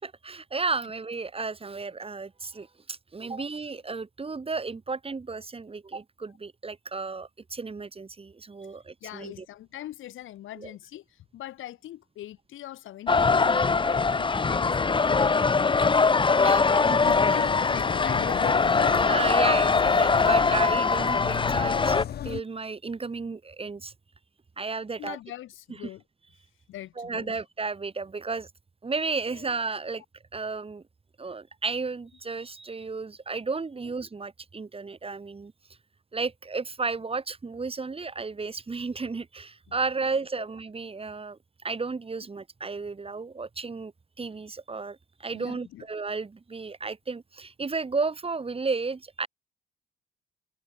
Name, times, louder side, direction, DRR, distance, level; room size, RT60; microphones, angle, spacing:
voice 1, 0.0-9.5 10.6-10.7 16.4-17.5 19.1-22.0 22.2-23.9 24.6-25.2 27.0-28.5 28.8-30.0 30.3-30.8 31.2-35.5 36.1-41.4 41.6-43.9 44.2-49.3, right 4 dB, 30° right, 4.5 m, -33 dB
voice 2, 9.0-18.2 25.0-26.0 26.7-27.4 29.3-29.5 40.4-40.5 45.3-45.9, left 13 dB, 80° left, 5.9 m, -43 dB
sound 1, 13.1-22.0, left 4 dB, 25° left, 1.1 m, -22 dB
sound 2, 17.0-22.4, left 10 dB, 55° left, 0.7 m, -33 dB
cardioid pair, 90°, 20 cm